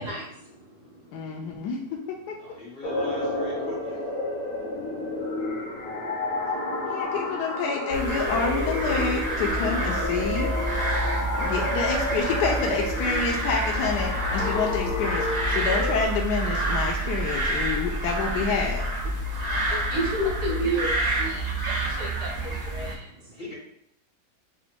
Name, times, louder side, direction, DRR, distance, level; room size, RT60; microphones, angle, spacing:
voice 1, 0.0-1.7 19.7-23.5, right 1 dB, 80° right, -2 dB, 1.7 m, -32 dB
voice 2, 1.1-2.3 6.8-10.5 11.4-18.8, left 5 dB, 90° left, 0 dB, 1.2 m, -28 dB
voice 3, 2.6-3.7 23.4-23.5, equal, 35° left, -6 dB, 1.2 m, -38 dB
sound 1, 2.8-16.0, left 1 dB, 60° left, 1.3 m, -30 dB
sound 2, 7.9-22.9, right 1 dB, 45° right, 0.5 m, -28 dB
5.0 x 2.1 x 4.4 m, 0.73 s
omnidirectional pair, 1.7 m